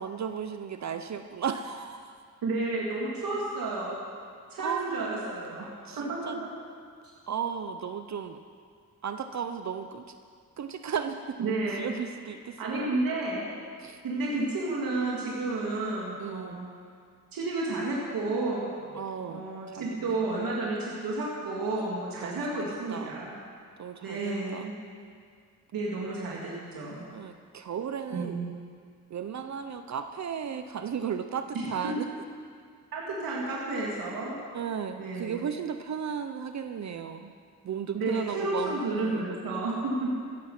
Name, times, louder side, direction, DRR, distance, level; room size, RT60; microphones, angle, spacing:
voice 1, 0.0-2.1 4.6-5.2 5.9-6.5 7.3-8.4 9.0-10.2 10.6-11.4 11.8-12.9 13.8-14.0 16.2-16.6 18.9-20.2 22.2-22.6 22.9-23.2 23.8-24.7 27.1-28.4 29.1-32.1 34.5-37.3 37.6-39.2, right 7 dB, 55° right, 8 dB, 0.8 m, -35 dB
voice 2, 2.4-4.0 4.5-5.7 6.0-6.3 11.4-11.9 12.6-13.5 14.0-16.7 17.3-18.7 19.3-23.4 24.0-24.7 25.7-27.1 28.1-28.5 31.5-31.9 32.9-34.4 34.9-35.4 37.9-40.1, right 2 dB, 85° right, -5 dB, 3.0 m, -31 dB
16.0 x 14.0 x 6.0 m, 2.1 s
cardioid pair, 100°, 34 cm